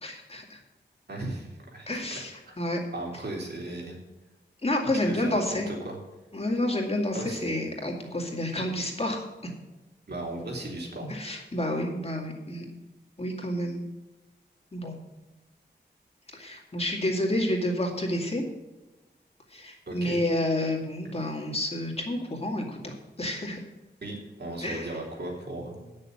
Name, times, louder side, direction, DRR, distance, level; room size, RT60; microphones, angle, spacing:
voice 1, 0.0-0.6 1.9-2.8 4.6-5.7 6.3-9.5 11.1-12.7 13.2-13.8 14.7-15.0 16.3-18.4 19.5-23.6 24.6-25.0, left 1 dB, 35° left, 0 dB, 2.3 m, -29 dB
voice 2, 1.1-2.5 2.9-4.0 5.1-6.0 7.1-7.5 10.1-11.2 19.9-20.2 24.0-25.9, right 1 dB, 65° right, -1 dB, 3.1 m, -37 dB
9.1 x 6.7 x 7.7 m, 1.1 s
wide cardioid pair, 95°, 18 cm